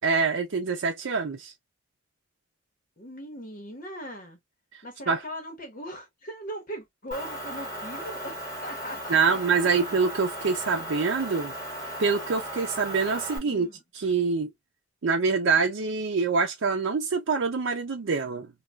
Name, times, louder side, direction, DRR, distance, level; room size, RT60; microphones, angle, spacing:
voice 1, 0.0-1.5 5.1-5.2 9.1-11.5 12.0-13.7 13.9-14.5 15.0-18.5, right 5 dB, 85° right, 0.5 m, -25 dB
voice 2, 3.0-4.4 4.8-9.8 13.3-13.8, equal, 45° left, 1.0 m, -39 dB
Motor vehicle (road) / Engine, 7.1-13.4, right 1 dB, 15° left, 1.2 m, -36 dB
3.3 x 2.3 x 2.3 m
head